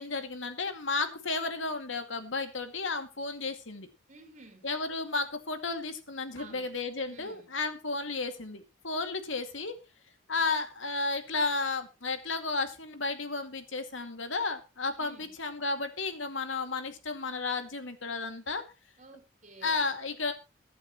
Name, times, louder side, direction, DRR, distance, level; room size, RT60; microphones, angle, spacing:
voice 1, 0.0-3.9 4.6-9.8 10.3-18.6 19.6-20.3, left 3 dB, 80° left, 2.3 m, -33 dB
voice 2, 4.1-4.7 6.4-6.7 7.1-7.5 15.0-15.4 19.0-19.9, right 3 dB, 40° right, 3.9 m, -52 dB
22.5 x 8.6 x 3.1 m
head